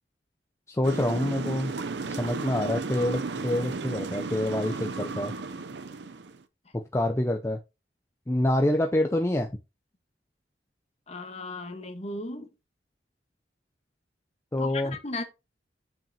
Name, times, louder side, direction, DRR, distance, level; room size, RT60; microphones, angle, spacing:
voice 1, 0.7-1.7 2.2-5.3 6.7-7.6 8.3-9.5 14.5-15.0, left 1 dB, 15° left, 0.5 m, -26 dB
sound 1, 0.8-6.4, right 4 dB, 70° right, 0.6 m, -34 dB
voice 2, 11.1-12.5 14.6-15.2, left 2 dB, 35° left, 1.2 m, -36 dB
7.3 x 5.8 x 2.8 m
head